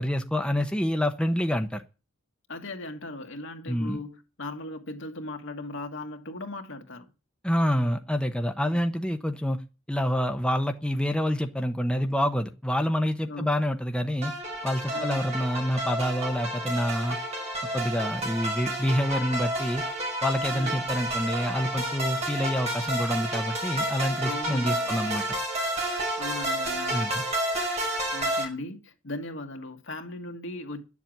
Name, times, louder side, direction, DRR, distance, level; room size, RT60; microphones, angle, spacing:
voice 1, 0.0-1.8 3.7-4.0 7.4-9.6 9.9-14.3 14.6-17.2 17.7-19.8 20.2-25.2 26.9-27.2, equal, 5° left, 0.8 m, -27 dB
voice 2, 2.5-7.1 13.2-13.5 14.6-15.2 20.5-20.9 24.2-24.9 26.2-27.1 28.1-30.8, left 2 dB, 60° left, 1.9 m, -38 dB
sound 1, 14.2-28.4, right 1 dB, 30° right, 5.5 m, -30 dB
11.0 x 7.3 x 9.3 m
head